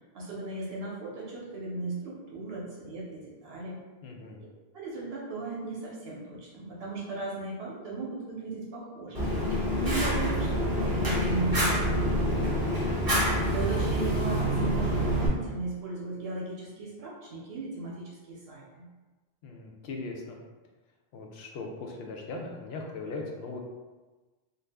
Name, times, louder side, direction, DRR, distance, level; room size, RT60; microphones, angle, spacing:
voice 1, 0.1-3.8 4.7-9.3 9.8-12.7 13.4-18.9, right 3 dB, 75° right, -4 dB, 0.9 m, -36 dB
voice 2, 4.0-4.4 19.4-20.4 21.1-23.6, left 3 dB, 75° left, 1 dB, 0.8 m, -39 dB
Fire, 9.1-15.3, equal, 25° right, 0.7 m, -27 dB
2.6 x 2.3 x 3.3 m, 1.3 s
omnidirectional pair, 1.1 m